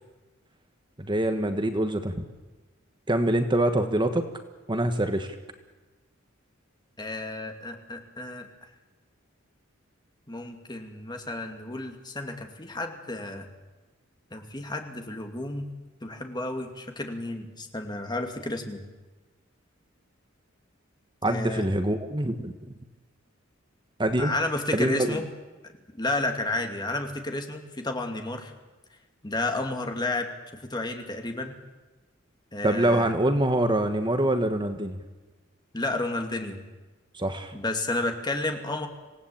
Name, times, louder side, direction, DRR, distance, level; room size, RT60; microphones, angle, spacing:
voice 1, 1.0-2.1 3.1-4.2 4.7-5.3 21.2-22.5 24.0-24.3 24.7-25.2 32.6-35.0 37.1-37.5, right 1 dB, 25° right, 7 dB, 1.4 m, -25 dB
voice 2, 7.0-8.5 10.3-13.5 14.3-15.7 16.0-18.8 21.3-21.7 24.2-25.3 25.9-28.5 29.2-31.5 32.5-33.1 35.7-36.6 37.5-38.9, left 2 dB, 20° left, 4 dB, 2.6 m, -31 dB
26.5 x 18.0 x 8.7 m, 1.2 s
head